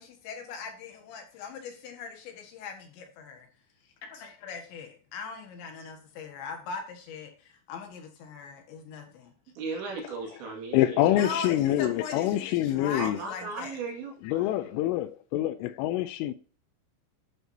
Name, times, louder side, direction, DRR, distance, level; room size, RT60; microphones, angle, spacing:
voice 1, 0.0-2.7 3.3-3.4 4.0-9.3 11.1-13.8, left 5 dB, 65° left, 3.7 m, -40 dB
voice 2, 9.6-11.4 11.7-12.0 13.0-14.8, right 4 dB, 65° right, 4.3 m, -37 dB
voice 3, 10.7-13.2 14.2-16.3, left 13 dB, 85° left, 3.0 m, -26 dB
11.5 x 7.5 x 2.8 m
omnidirectional pair, 5.8 m